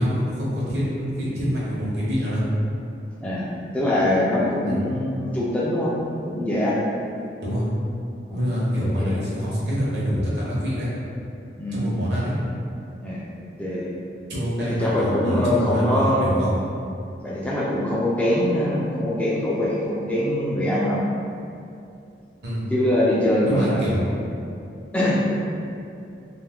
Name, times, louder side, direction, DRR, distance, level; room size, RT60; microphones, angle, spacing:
voice 1, 0.0-2.4 4.7-4.8 7.4-7.6 8.3-10.9 11.7-12.3 14.3-16.6 22.4-22.7 23.4-24.0, equal, 70° right, -7 dB, 0.8 m, -25 dB
voice 2, 3.2-5.9 6.2-6.8 8.3-8.5 9.0-9.1 11.6-11.9 13.0-13.3 13.6-13.9 14.6-16.4 17.2-21.1 22.7-24.1 24.9-25.2, left 1 dB, 10° left, -7 dB, 0.3 m, -23 dB
2.5 x 2.3 x 3.5 m, 2.6 s
head